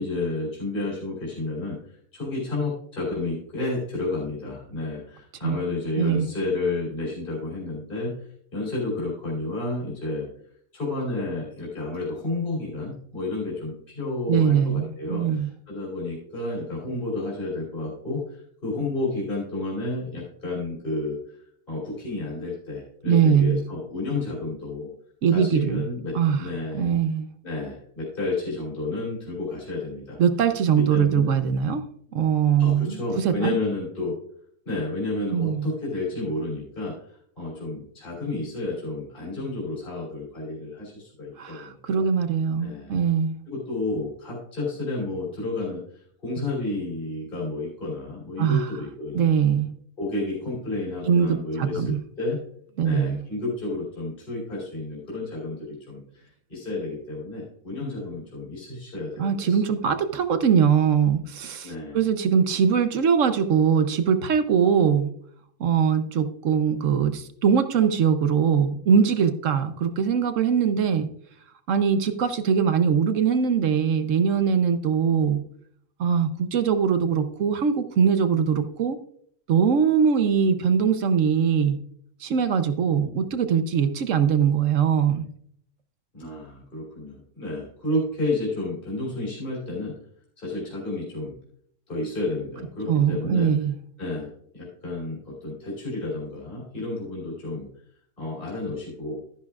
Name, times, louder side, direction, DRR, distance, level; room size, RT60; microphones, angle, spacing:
voice 1, 0.0-10.3 10.7-21.4 21.7-24.9 25.3-26.9 27.4-30.2 30.8-31.3 32.6-34.2 34.6-42.0 42.6-43.0 43.5-49.4 50.0-52.4 52.8-59.9 61.6-62.0 86.1-90.0 90.4-91.4 91.9-93.5 94.0-97.7 98.2-99.2, left 2 dB, 35° left, -5 dB, 3.3 m, -31 dB
voice 2, 6.0-6.3 14.3-15.5 23.1-23.6 25.2-25.8 26.1-26.5 26.7-27.3 30.2-31.8 32.1-33.5 35.3-35.7 41.4-43.3 48.4-48.7 49.1-49.7 51.1-52.0 52.8-53.2 59.2-65.1 65.6-71.1 71.7-75.4 76.0-79.0 79.5-81.8 82.2-85.2 92.9-93.8, right 7 dB, 60° right, 10 dB, 1.0 m, -22 dB
12.5 x 10.5 x 2.4 m, 0.65 s
omnidirectional pair, 1.6 m